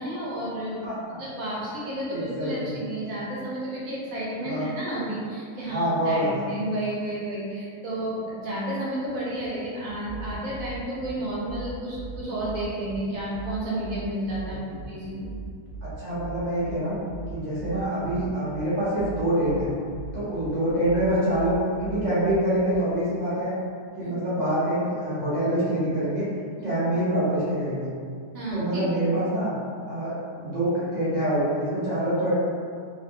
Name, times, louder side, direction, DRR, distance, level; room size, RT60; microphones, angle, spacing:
voice 1, 0.0-0.8 1.2-15.3 24.0-24.1 26.6-26.7 28.3-28.8, right 1 dB, 65° right, -7 dB, 0.9 m, -31 dB
voice 2, 0.8-1.2 2.1-2.7 4.4-4.7 5.7-6.5 14.5-14.8 15.8-17.0 17.3-19.7 20.1-23.5 23.9-26.3 26.6-27.9 28.5-29.5 29.9-32.3, right 1 dB, 45° right, -12 dB, 0.6 m, -26 dB
sound 1, 9.9-22.8, right 2 dB, 60° left, 0.8 m, -40 dB
2.7 x 2.1 x 2.6 m, 2.2 s
omnidirectional pair, 1.7 m